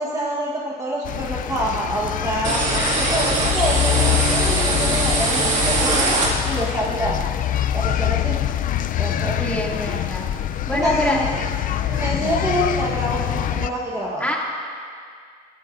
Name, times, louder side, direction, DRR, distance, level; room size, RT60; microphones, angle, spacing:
voice 1, 0.0-2.6 2.9-6.1 6.4-7.2 7.7-8.4 9.0-9.4 10.7-11.4 11.9-14.2, right 1 dB, 20° right, -4 dB, 1.3 m, -26 dB
sound 1, 1.0-13.7, left 11 dB, 55° left, 0.5 m, -24 dB
sound 2, 2.4-6.8, right 3 dB, 45° right, 2.2 m, -22 dB
voice 2, 9.4-10.3 10.7-11.2 14.2-14.4, left 1 dB, 10° left, -4 dB, 2.5 m, -24 dB
20.5 x 13.5 x 2.6 m, 2.1 s
cardioid pair, 110°, 17 cm